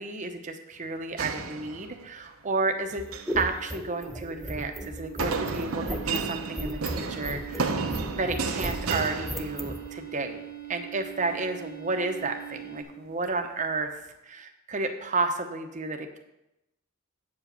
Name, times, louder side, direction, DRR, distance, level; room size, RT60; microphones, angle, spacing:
voice 1, 0.0-3.1 3.4-7.7 8.1-10.4 10.7-13.9 14.2-16.2, right 3 dB, 35° right, 5 dB, 0.9 m, -31 dB
sound 1, 1.2-2.3 2.9-3.4 5.2-10.0, right 4 dB, 75° right, 0.8 m, -32 dB
sound 2, 2.6-12.8, right 14 dB, 75° left, 2.1 m, -43 dB
sound 3, 2.9-9.8, equal, ahead, 0.7 m, -35 dB
8.4 x 4.9 x 6.8 m, 0.91 s
head